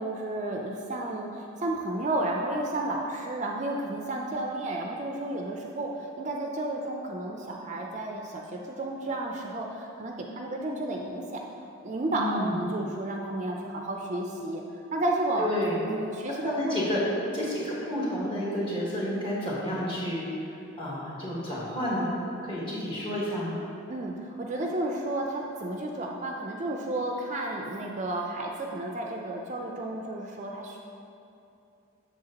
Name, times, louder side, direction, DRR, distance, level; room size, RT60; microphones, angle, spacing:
voice 1, 0.0-11.4 11.8-14.6 14.9-15.5 15.8-16.8 17.1-17.3 23.9-30.8, right 2 dB, 35° right, 0 dB, 0.4 m, -32 dB
voice 2, 12.1-12.6 15.4-15.8 16.4-17.0 17.3-20.2 20.8-22.1 22.4-23.6, left 1 dB, 25° left, -7 dB, 1.5 m, -30 dB
7.5 x 6.5 x 2.9 m, 2.7 s
head